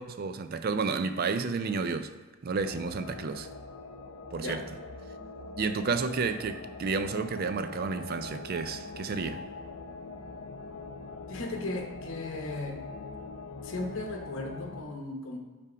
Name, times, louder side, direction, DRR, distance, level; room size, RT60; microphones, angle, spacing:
voice 1, 0.0-2.1 2.4-3.5 4.3-4.6 5.6-9.4, right 4 dB, 45° right, 10 dB, 0.4 m, -31 dB
sound 1, 2.6-14.8, left 3 dB, 85° left, 0.6 m, -43 dB
voice 2, 11.3-12.8 13.6-15.4, left 2 dB, 65° left, 2 dB, 0.9 m, -36 dB
5.6 x 3.5 x 5.0 m, 1.4 s
head